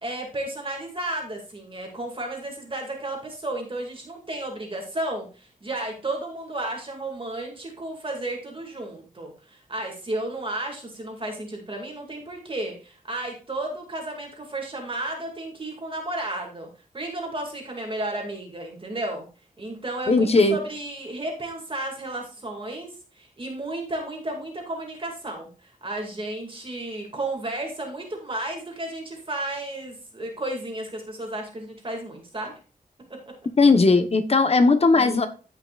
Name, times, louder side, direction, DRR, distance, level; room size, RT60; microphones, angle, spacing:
voice 1, 0.0-16.7 16.9-19.2 19.6-32.5 34.9-35.2, right 1 dB, 35° right, 2.2 m, -33 dB
voice 2, 20.1-20.6 33.6-35.3, left 3 dB, 45° left, 1.0 m, -18 dB
14.5 x 5.6 x 2.4 m
wide cardioid pair, 120°, 15 cm